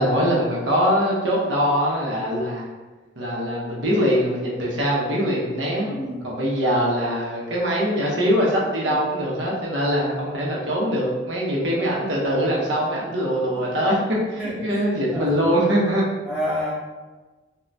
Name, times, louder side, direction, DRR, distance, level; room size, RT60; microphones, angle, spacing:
voice 1, 0.0-2.7 3.2-5.9 6.2-14.0 14.3-16.0, equal, 70° right, -4 dB, 0.6 m, -22 dB
voice 2, 5.8-6.3 8.9-9.0 13.5-13.8 14.4-15.3 16.2-16.7, equal, 5° right, -9 dB, 0.7 m, -31 dB
3.2 x 2.1 x 2.5 m, 1.2 s
head